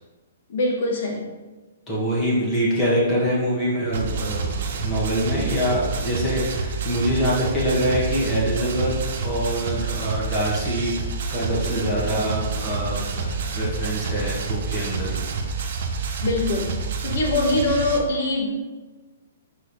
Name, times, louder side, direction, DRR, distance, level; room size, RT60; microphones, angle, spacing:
voice 1, 0.5-1.3 16.2-16.8 17.0-18.6, left 2 dB, 60° left, -1 dB, 1.7 m, -23 dB
voice 2, 1.9-8.9 9.2-15.3, equal, 15° left, -7 dB, 1.7 m, -25 dB
sound 1, 3.9-18.0, right 5 dB, 55° right, 0.9 m, -28 dB
5.0 x 4.8 x 4.8 m, 1.2 s
hypercardioid pair, 155°, 0 cm